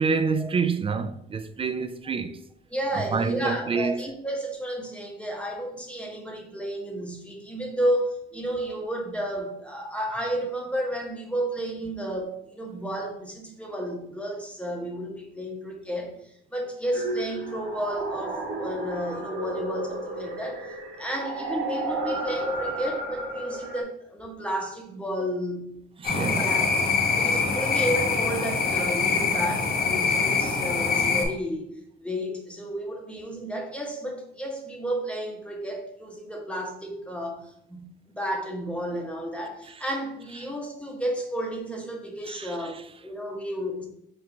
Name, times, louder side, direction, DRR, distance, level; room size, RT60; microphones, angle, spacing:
voice 1, 0.0-2.4 2.9-4.0 26.0-26.5 42.3-42.5, right 5 dB, 30° right, 0.3 m, -27 dB
voice 2, 2.7-20.7 21.0-26.8 27.2-31.7 32.0-43.9, equal, 5° left, 1.0 m, -32 dB
sound 1, 16.9-23.8, right 2 dB, 80° right, 1.1 m, -32 dB
sound 2, 26.0-31.3, left 5 dB, 50° left, 0.9 m, -24 dB
4.5 x 2.6 x 3.3 m
cardioid pair, 90°, 20 cm